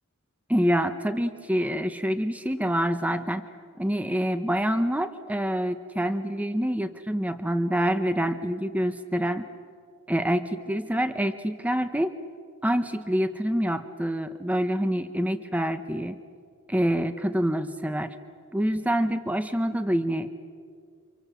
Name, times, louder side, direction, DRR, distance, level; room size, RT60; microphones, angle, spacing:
voice 1, 0.5-3.4 3.8-9.5 10.1-12.2 12.6-16.2 16.7-18.1 18.5-20.4, equal, 5° right, 9 dB, 0.8 m, -26 dB
29.0 x 26.0 x 7.7 m, 2.2 s
head